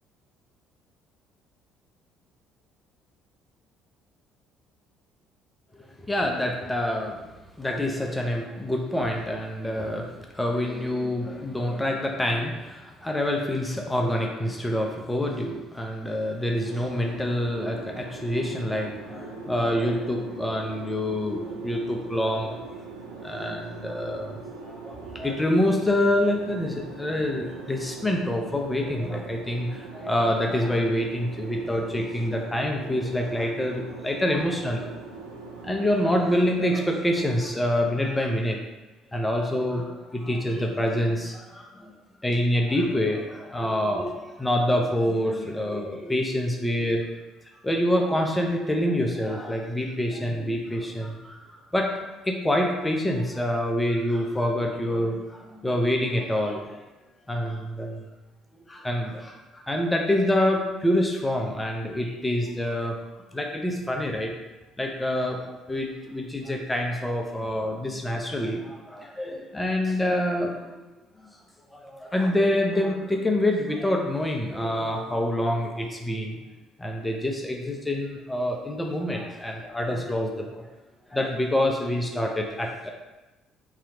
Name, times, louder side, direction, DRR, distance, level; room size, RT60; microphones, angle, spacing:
voice 1, 5.7-7.3 7.6-22.6 23.2-34.9 35.6-38.6 39.1-41.9 42.2-47.0 47.6-51.4 51.7-56.8 57.3-58.1 58.7-63.0 63.3-64.3 64.8-70.8 71.2-71.3 71.7-76.4 76.8-80.7 81.1-82.9, left 1 dB, 15° left, 1 dB, 0.6 m, -26 dB
sound 1, 16.6-36.5, right 4 dB, 80° right, 0.5 m, -41 dB
3.2 x 2.9 x 3.8 m, 1.1 s
figure-of-eight pair, 50°, 0 cm